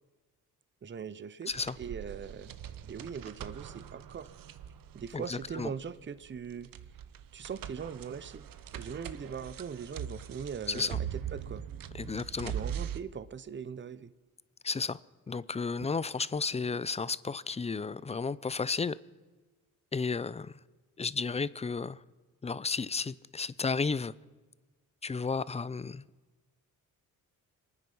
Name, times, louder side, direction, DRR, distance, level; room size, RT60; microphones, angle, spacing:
voice 1, 0.8-1.5 1.8-2.5 2.8-4.3 4.9-6.7 7.3-11.6 12.4-14.1, right 6 dB, 30° right, 0.8 m, -41 dB
voice 2, 1.4-1.8 5.1-5.7 10.7-11.0 11.9-12.5 14.6-15.0 15.3-19.0 19.9-20.5 21.0-22.0 22.4-24.1 25.0-26.0, left 4 dB, 20° left, 0.4 m, -33 dB
sound 1, 1.5-13.0, right 9 dB, 65° right, 0.9 m, -41 dB
26.0 x 9.7 x 5.5 m
cardioid pair, 85°, 36 cm